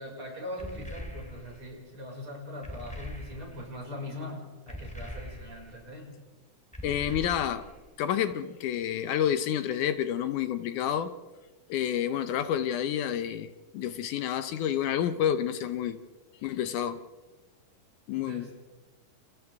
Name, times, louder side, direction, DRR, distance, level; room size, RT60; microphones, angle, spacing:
voice 1, 0.0-6.1 18.1-18.6, left 1 dB, 40° right, -1 dB, 6.5 m, -41 dB
sound 1, 0.6-1.7 2.6-3.7 4.7-5.8 6.7-7.8, equal, 5° left, 1.9 m, -42 dB
voice 2, 6.8-7.7 8.0-11.1 11.7-16.0 16.4-17.0 18.1-18.5, left 10 dB, 75° left, 10 dB, 2.2 m, -29 dB
29.5 x 29.0 x 3.6 m, 1.2 s
omnidirectional pair, 3.7 m